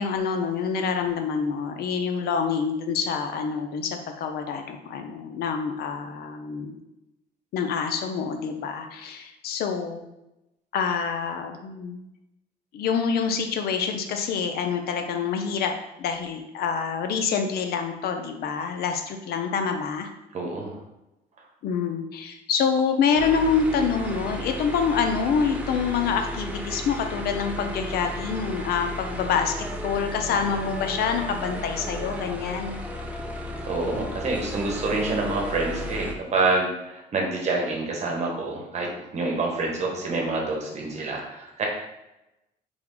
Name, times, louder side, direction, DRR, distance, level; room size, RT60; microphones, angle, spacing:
voice 1, 0.0-6.8 7.5-10.1 10.7-12.1 12.7-20.1 21.6-29.5 29.8-32.8, left 6 dB, 65° left, 5 dB, 0.6 m, -26 dB
voice 2, 20.3-20.7 33.7-41.7, right 3 dB, 40° right, 0 dB, 1.1 m, -27 dB
sound 1, 23.1-36.1, equal, 10° right, 0.5 m, -34 dB
3.5 x 3.4 x 3.7 m, 0.93 s
cardioid pair, 110°, 17 cm